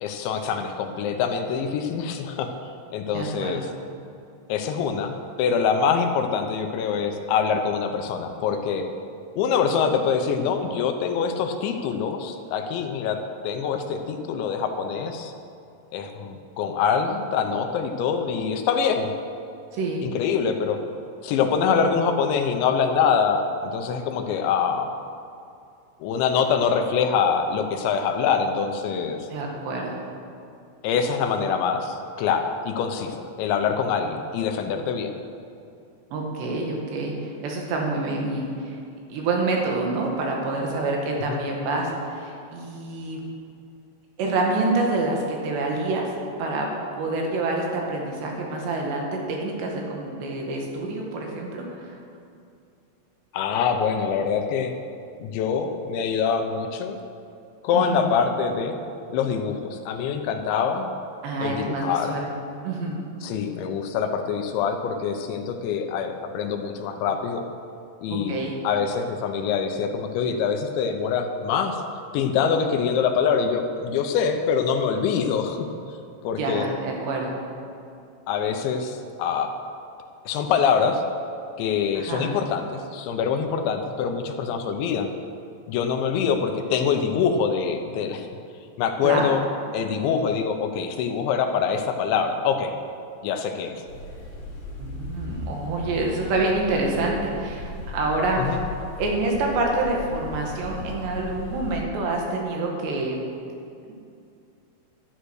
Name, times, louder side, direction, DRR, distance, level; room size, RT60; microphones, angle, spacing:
voice 1, 0.0-2.5 2.9-3.7 4.5-8.9 9.4-15.3 15.9-19.1 20.0-20.8 21.2-24.9 26.0-29.2 30.8-35.1 41.3-41.4 53.3-54.7 55.2-57.0 57.6-58.7 59.1-60.9 61.4-62.2 63.2-67.4 68.0-68.4 68.6-71.8 72.1-75.7 76.2-76.7 78.3-79.5 80.3-81.0 81.6-82.7 82.9-85.1 85.7-88.3 88.8-89.4 89.7-92.7 93.2-93.7 98.4-98.6, left 6 dB, 80° left, 6 dB, 3.1 m, -24 dB
voice 2, 3.1-3.6 19.7-20.1 29.3-30.0 36.1-38.7 39.1-43.2 44.2-46.0 46.4-46.7 47.0-51.9 57.7-58.1 61.2-62.3 62.6-63.0 68.1-68.5 76.4-77.3 82.0-82.3 89.0-89.3 94.8-98.4 99.0-103.2, right 2 dB, 65° right, 0 dB, 3.9 m, -27 dB
sound 1, 93.9-101.8, left 3 dB, 50° left, 2.8 m, -37 dB
13.0 x 11.5 x 6.4 m, 2.5 s
omnidirectional pair, 5.5 m